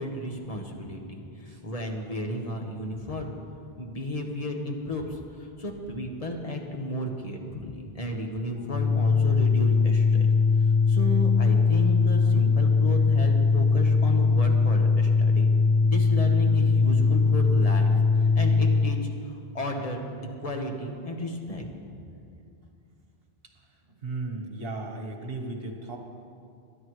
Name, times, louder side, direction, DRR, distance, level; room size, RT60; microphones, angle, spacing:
voice 1, 0.0-3.3 3.8-10.3 10.9-15.5 15.8-17.9 18.2-19.0 19.3-20.1 20.4-21.6, left 1 dB, 35° left, 2 dB, 1.3 m, -33 dB
Organ, 8.6-19.0, left 4 dB, 80° left, 0.9 m, -21 dB
voice 2, 24.0-26.0, right 2 dB, 65° right, 3 dB, 1.5 m, -35 dB
22.0 x 10.5 x 3.2 m, 2.4 s
omnidirectional pair, 1.1 m